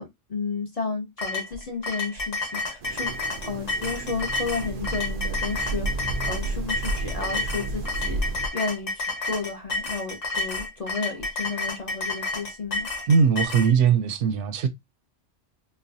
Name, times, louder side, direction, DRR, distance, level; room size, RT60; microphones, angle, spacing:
voice 1, 0.0-3.1 3.5-8.2 8.5-12.9, left 4 dB, 40° left, 0.5 m, -32 dB
sound 1, 1.2-13.7, left 3 dB, 90° left, 1.6 m, -30 dB
sound 2, 2.8-8.5, right 3 dB, 60° right, 0.4 m, -31 dB
voice 2, 13.1-14.7, right 6 dB, 85° right, 0.9 m, -20 dB
4.0 x 2.2 x 2.6 m
omnidirectional pair, 1.2 m